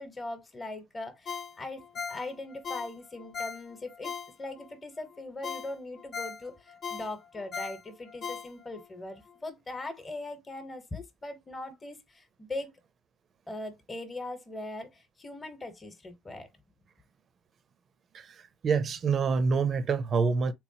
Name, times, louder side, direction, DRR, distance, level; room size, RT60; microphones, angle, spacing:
voice 1, 0.0-1.8 2.1-4.1 4.4-12.7 13.5-16.5, left 2 dB, 20° left, 1.0 m, -40 dB
Ringtone, 1.3-4.7 5.1-5.2 5.4-8.9 9.3-9.4, left 6 dB, 45° left, 0.6 m, -39 dB
voice 2, 18.6-20.5, right 5 dB, 45° right, 0.6 m, -26 dB
3.5 x 3.1 x 2.8 m
supercardioid pair, 95°, 0 cm